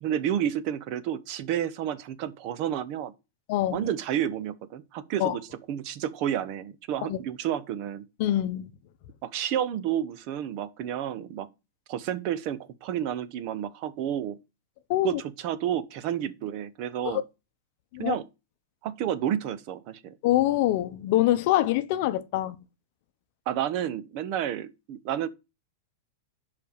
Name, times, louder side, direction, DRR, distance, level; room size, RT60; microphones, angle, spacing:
voice 1, 0.0-3.1 3.7-8.1 9.2-11.5 11.9-14.4 15.0-17.2 18.0-18.3 18.8-20.1 23.5-25.3, right 10 dB, 35° right, 0.6 m, -30 dB
voice 2, 3.5-3.9 5.2-5.4 7.1-7.2 8.2-8.7 14.9-15.2 17.0-17.2 17.9-18.1 20.2-22.6, left 14 dB, 45° left, 0.7 m, -25 dB
5.5 x 5.1 x 6.4 m
supercardioid pair, 170°, 0 cm